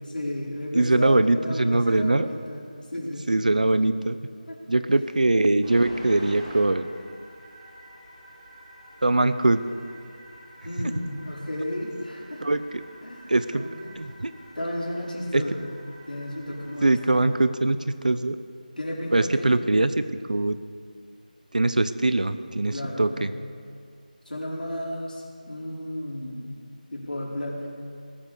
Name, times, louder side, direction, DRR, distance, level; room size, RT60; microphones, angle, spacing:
voice 1, 0.1-2.6 2.9-3.5 4.5-4.6 10.6-12.5 13.0-13.9 14.5-15.6 16.1-17.4 18.8-19.6 22.7-23.4 24.2-26.5 26.9-27.7, left 1 dB, 80° left, -4 dB, 4.9 m, -33 dB
voice 2, 0.7-2.3 3.3-4.2 4.7-6.9 9.0-9.6 12.4-12.6 13.3-13.7 14.0-14.3 15.3-15.4 16.8-18.4 19.1-20.0 20.3-20.6 21.5-23.3, right 2 dB, 60° right, 13 dB, 0.8 m, -22 dB
sound 1, 5.6-17.3, right 1 dB, 25° right, 3.5 m, -47 dB
19.5 x 9.0 x 6.5 m, 2.3 s
figure-of-eight pair, 180°, 5 cm